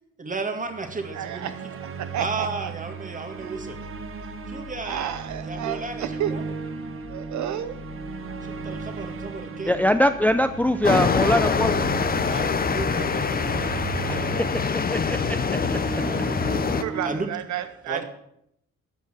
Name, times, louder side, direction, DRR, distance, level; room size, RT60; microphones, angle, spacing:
voice 1, 0.2-1.5 2.2-3.8 4.5-5.2 5.4-6.4 8.4-9.8 12.2-13.7 15.9-17.3 17.9-18.0, right 3 dB, 25° right, 2.1 m, -34 dB
sound 1, 0.7-17.2, right 5 dB, 45° right, 1.2 m, -36 dB
voice 2, 1.1-2.7 3.4-3.5 4.8-6.4 7.1-7.8 16.8-18.0, right 11 dB, 70° right, 0.7 m, -31 dB
sound 2, 3.3-14.5, left 6 dB, 75° left, 3.3 m, -46 dB
voice 3, 9.7-11.7 14.1-15.6, left 1 dB, 5° left, 0.5 m, -23 dB
sound 3, 10.8-16.8, left 5 dB, 30° left, 0.9 m, -24 dB
13.0 x 5.5 x 8.1 m
cardioid pair, 90°, 30 cm